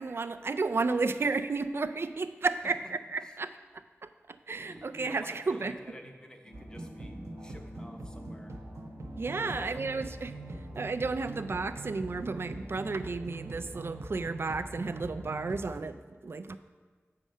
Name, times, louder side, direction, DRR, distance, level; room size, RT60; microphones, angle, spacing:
voice 1, 0.0-5.7 9.2-10.3 10.8-16.6, right 3 dB, 55° right, 10 dB, 0.3 m, -33 dB
voice 2, 4.7-8.5 9.3-10.1, equal, 15° left, 3 dB, 0.8 m, -49 dB
sound 1, 6.4-13.0, left 1 dB, 75° left, 1.0 m, -51 dB
sound 2, 6.5-15.8, right 2 dB, 75° right, 0.8 m, -43 dB
7.6 x 4.9 x 5.3 m, 1.5 s
wide cardioid pair, 70°, 5 cm